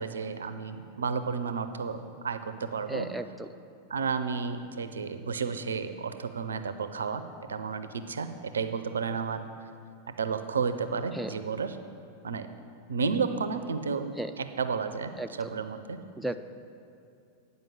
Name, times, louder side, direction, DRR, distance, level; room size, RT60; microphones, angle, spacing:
voice 1, 0.0-3.1 3.9-7.2 7.5-9.4 10.2-11.8 12.2-12.5 12.9-14.1 14.4-15.1 15.4-16.0, right 5 dB, 70° right, 10 dB, 0.5 m, -32 dB
voice 2, 2.9-3.5 11.1-11.4 14.2-14.3 15.2-15.5 16.2-16.4, right 1 dB, ahead, 7 dB, 0.3 m, -34 dB
9.1 x 5.3 x 7.2 m, 2.6 s
figure-of-eight pair, 90°, 0 cm